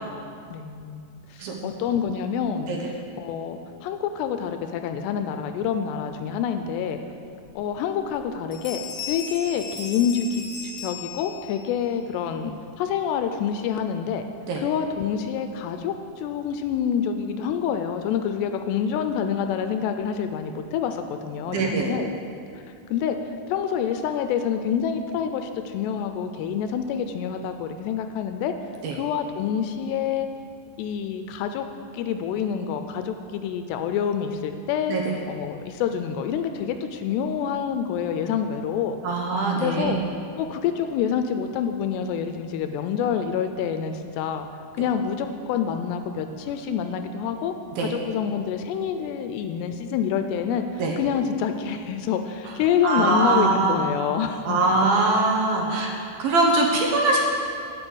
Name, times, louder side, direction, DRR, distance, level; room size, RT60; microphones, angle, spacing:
voice 1, 0.5-1.0 1.3-2.7 3.2-7.0 7.6-8.8 9.1-14.2 14.6-22.1 22.9-23.2 23.5-28.5 28.9-30.3 30.8-31.7 31.9-35.0 35.3-39.0 39.6-40.0 40.4-44.5 44.8-47.5 47.8-54.6, left 8 dB, 80° left, 7 dB, 2.6 m, -27 dB
Bell, 7.4-7.5 8.0-8.3 8.5-11.7, left 5 dB, 40° left, 1.1 m, -36 dB
voice 2, 21.5-21.9 28.8-28.9 34.9-35.0 39.0-40.0 44.8-44.9 47.8-47.9 50.8-51.0 52.8-53.8 54.5-55.9 56.2-57.2, right 3 dB, 70° right, -1 dB, 2.7 m, -22 dB
9.9 x 9.0 x 7.9 m, 2.4 s
omnidirectional pair, 5.1 m